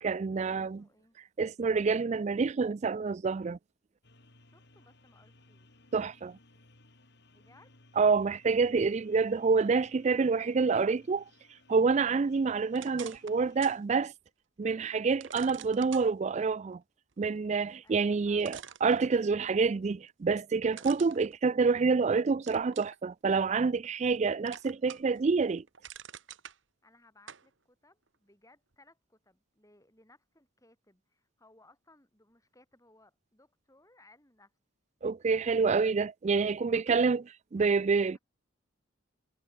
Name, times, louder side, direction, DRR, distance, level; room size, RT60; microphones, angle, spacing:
voice 1, 0.0-0.8 1.4-3.6 5.9-6.4 8.0-11.2 11.7-14.1 14.6-16.8 17.2-25.6 35.0-37.2 37.5-38.2, right 4 dB, 35° right, 0.3 m, -27 dB
voice 2, 0.6-1.2 4.5-5.9 7.3-7.8 17.8-18.4 26.8-34.5 35.5-35.8 36.9-37.0, left 2 dB, 15° left, 7.1 m, -63 dB
sound 1, 4.0-13.8, left 2 dB, 55° left, 4.3 m, -62 dB
sound 2, 12.7-13.8 14.3-14.4 15.2-16.1 17.9-18.0 18.4-19.5 20.7-22.0 22.5-23.0 23.5-24.2 24.5-25.2 25.5-26.6 27.3-27.5, right 8 dB, 60° right, 1.5 m, -47 dB
head